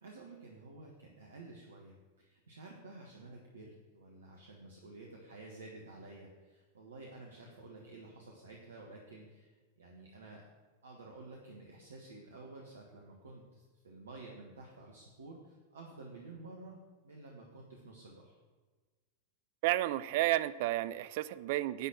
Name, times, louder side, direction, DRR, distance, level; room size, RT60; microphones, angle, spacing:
voice 1, 0.0-10.4 10.8-18.4, right 2 dB, 70° right, 0 dB, 1.3 m, -51 dB
voice 2, 19.6-21.9, right 15 dB, 50° right, 16 dB, 0.3 m, -31 dB
11.0 x 4.3 x 7.6 m, 1.3 s
figure-of-eight pair, 90°, 0 cm